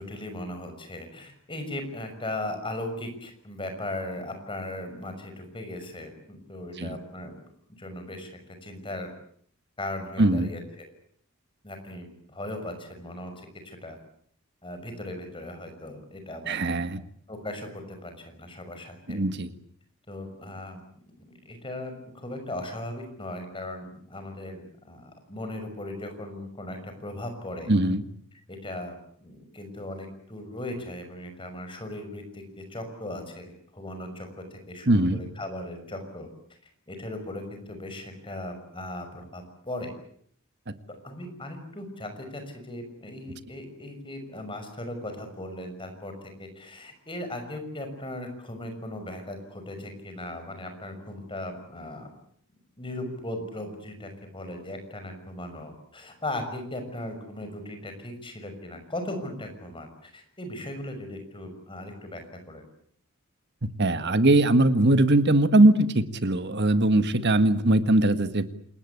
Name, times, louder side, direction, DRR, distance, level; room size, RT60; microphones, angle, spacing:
voice 1, 0.0-7.4 7.8-9.1 9.8-10.9 11.6-14.0 14.6-16.6 17.3-19.2 20.1-20.8 21.2-27.7 28.3-28.9 29.2-36.3 36.9-39.9 41.0-52.1 52.8-62.6, left 1 dB, 25° left, 6 dB, 6.1 m, -38 dB
voice 2, 10.2-10.5 16.5-17.0 19.1-19.5 27.7-28.0 34.9-35.2 63.6-68.4, right 1 dB, 50° right, 11 dB, 1.6 m, -21 dB
28.0 x 20.0 x 8.5 m, 0.63 s
head